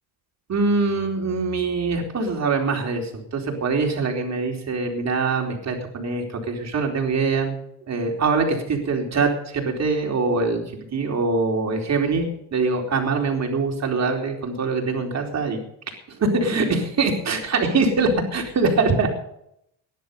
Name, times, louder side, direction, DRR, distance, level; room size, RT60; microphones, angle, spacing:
voice 1, 0.5-7.6 7.9-10.6 10.9-15.6 16.2-19.1, right 4 dB, 35° right, 2 dB, 4.2 m, -23 dB
17.5 x 11.0 x 5.5 m, 0.73 s
supercardioid pair, 100°, 44 cm